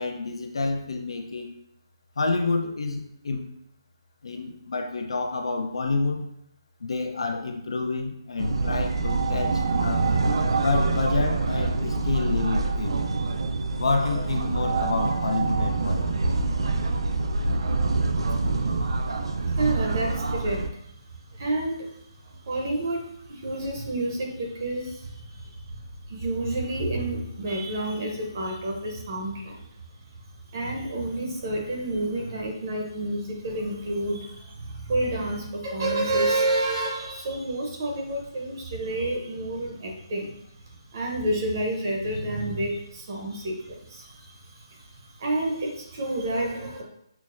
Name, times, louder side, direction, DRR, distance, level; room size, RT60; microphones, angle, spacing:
voice 1, 0.0-1.6 2.2-3.5 4.2-6.3 6.8-10.1 10.6-13.0 13.8-16.2, left 3 dB, 80° left, 4 dB, 0.6 m, -28 dB
sound 1, 8.4-20.7, right 3 dB, 75° right, 0.4 m, -25 dB
voice 2, 18.5-25.8 26.1-29.6 30.5-40.4 40.6-46.8, right 1 dB, 40° right, 0 dB, 0.7 m, -30 dB
5.8 x 2.0 x 2.5 m, 0.76 s
hypercardioid pair, 170°, 3 cm